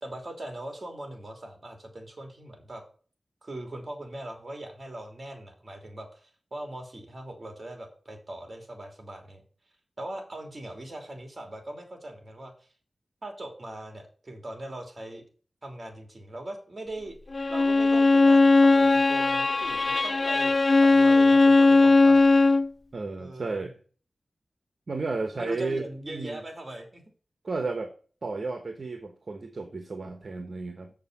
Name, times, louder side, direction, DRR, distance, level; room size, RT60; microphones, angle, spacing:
voice 1, 0.0-2.8 3.4-9.4 10.0-12.5 13.2-15.2 15.6-17.2 17.5-22.2 23.2-23.7 25.4-27.0, right 1 dB, 40° right, 3 dB, 3.0 m, -40 dB
Bowed string instrument, 17.3-22.7, left 3 dB, 45° left, 0.3 m, -19 dB
voice 2, 22.9-23.8 24.9-26.4 27.4-27.9 28.2-30.9, right 3 dB, 55° right, 6 dB, 1.2 m, -33 dB
7.2 x 6.7 x 5.5 m, 0.40 s
wide cardioid pair, 80°, 0 cm